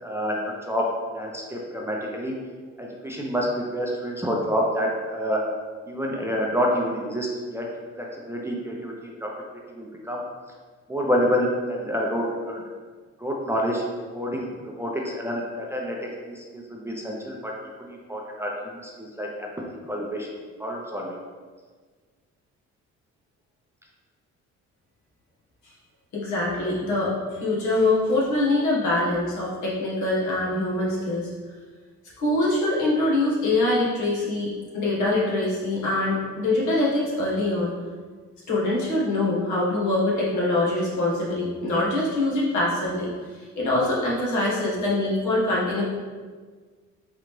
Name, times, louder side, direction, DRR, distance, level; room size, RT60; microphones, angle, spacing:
voice 1, 0.0-2.3 2.8-5.4 5.9-7.7 8.0-8.9 9.2-9.3 9.7-10.2 10.9-12.6 13.2-13.8 14.1-17.5 17.8-19.5 19.9-20.3 20.6-21.1, equal, 10° right, -2 dB, 0.6 m, -28 dB
voice 2, 26.1-31.3 32.2-37.8 38.5-45.8, left 2 dB, 75° left, -5 dB, 1.4 m, -24 dB
3.8 x 3.3 x 3.1 m, 1.5 s
cardioid pair, 90°, 30 cm